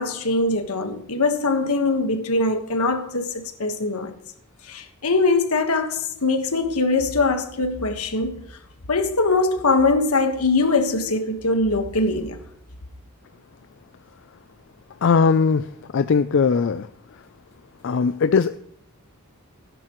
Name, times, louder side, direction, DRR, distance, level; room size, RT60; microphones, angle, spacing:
voice 1, 0.0-4.1 4.7-8.4 8.9-12.4, left 3 dB, 75° left, 1.4 m, -22 dB
voice 2, 15.0-15.6 15.9-16.9 17.8-18.5, left 5 dB, 55° left, 0.4 m, -19 dB
17.0 x 10.0 x 3.1 m
head